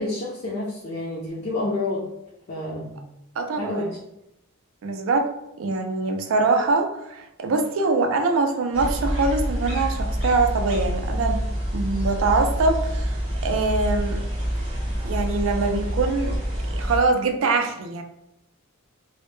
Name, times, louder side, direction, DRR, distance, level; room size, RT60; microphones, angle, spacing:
voice 1, 0.0-2.0 2.5-3.0 3.6-4.0, left 2 dB, 45° left, -5 dB, 0.4 m, -29 dB
voice 2, 3.4-3.9 4.8-5.3 5.6-11.4 11.7-13.2 13.4-14.3 15.0-16.4 16.7-18.0, right 3 dB, 65° right, 5 dB, 0.3 m, -23 dB
sound 1, 8.7-17.0, equal, 30° right, 0.8 m, -27 dB
2.1 x 2.0 x 3.0 m, 0.83 s
head